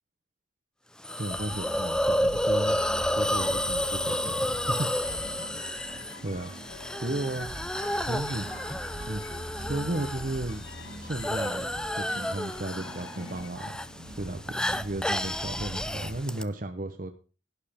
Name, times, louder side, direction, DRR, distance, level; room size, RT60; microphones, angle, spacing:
Hiss, 1.0-16.4, left 1 dB, 5° left, 0.5 m, -31 dB
voice 1, 1.2-2.8 3.1-4.9 6.2-6.5 7.0-7.5 8.1-8.5 9.1-9.2 9.5-10.7 11.0-11.7 12.0-13.8 14.1-17.1, right 2 dB, 45° right, 7 dB, 1.1 m, -34 dB
sound 1, 1.3-16.2, right 1 dB, 70° right, 2.6 m, -43 dB
sound 2, 2.7-13.5, left 4 dB, 60° left, 1.6 m, -48 dB
12.0 x 11.5 x 3.7 m, 0.35 s
head